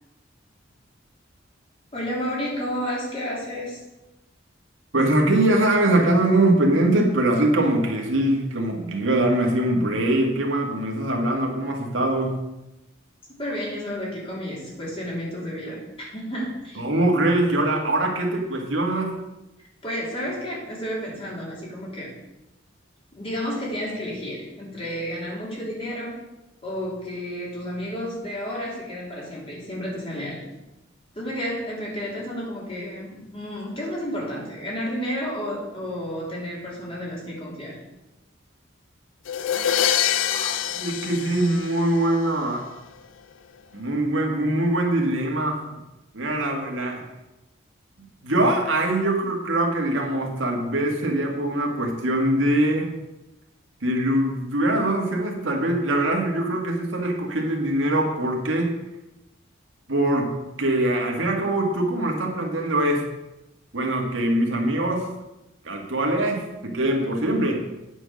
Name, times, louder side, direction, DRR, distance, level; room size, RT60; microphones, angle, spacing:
voice 1, 1.9-3.8 13.4-16.8 19.8-22.1 23.2-26.2 26.6-30.4 31.1-37.8, equal, 30° left, -5 dB, 3.2 m, -31 dB
voice 2, 4.9-12.4 16.8-19.2 40.3-42.7 43.7-45.6 46.1-47.0 48.2-52.9 53.8-58.7 59.9-60.3 60.6-63.1 63.7-65.1 65.6-67.6, right 1 dB, 80° right, 1 dB, 1.9 m, -22 dB
sound 1, 39.3-42.2, left 10 dB, 85° left, 0.5 m, -25 dB
9.0 x 6.3 x 6.4 m, 0.97 s
head